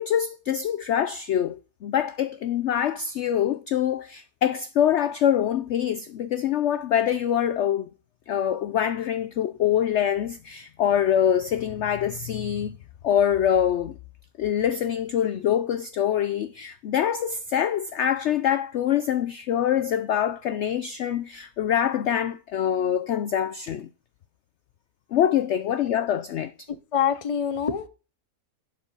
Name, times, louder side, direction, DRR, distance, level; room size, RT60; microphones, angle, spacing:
voice 1, 0.0-7.9 8.3-12.8 13.0-14.0 14.4-23.9 25.1-26.7, left 9 dB, 65° left, 0.7 m, -25 dB
voice 2, 26.7-27.9, left 8 dB, 30° left, 0.6 m, -26 dB
11.5 x 4.7 x 5.4 m
omnidirectional pair, 1.7 m